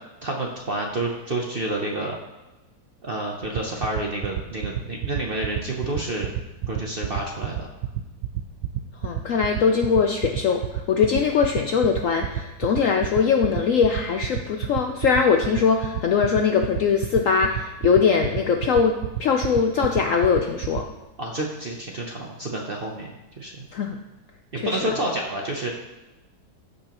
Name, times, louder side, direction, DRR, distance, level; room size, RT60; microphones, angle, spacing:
voice 1, 0.2-2.2 3.0-6.3 6.7-7.7 21.2-23.5 24.5-25.7, right 1 dB, 50° right, 0 dB, 0.6 m, -29 dB
sound 1, 3.4-20.8, right 14 dB, 85° right, 1.3 m, -27 dB
voice 2, 9.0-10.6 10.9-20.9 23.7-24.0 24.6-24.9, left 6 dB, 75° left, 4 dB, 0.7 m, -21 dB
14.5 x 5.3 x 3.0 m, 1.0 s
omnidirectional pair, 2.0 m